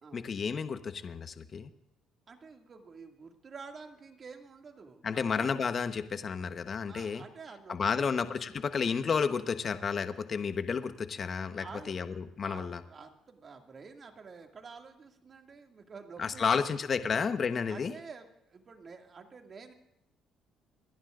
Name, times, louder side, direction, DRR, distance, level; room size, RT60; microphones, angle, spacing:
voice 1, 0.1-1.7 5.0-7.2 7.7-12.8 16.2-17.9, left 6 dB, 45° left, 10 dB, 1.1 m, -31 dB
voice 2, 2.3-5.5 6.9-8.2 11.5-12.1 12.4-16.6 17.0-17.1 17.7-19.7, right 5 dB, 40° right, 4 dB, 2.2 m, -49 dB
28.0 x 11.0 x 2.5 m, 0.81 s
cardioid pair, 85°, 0 cm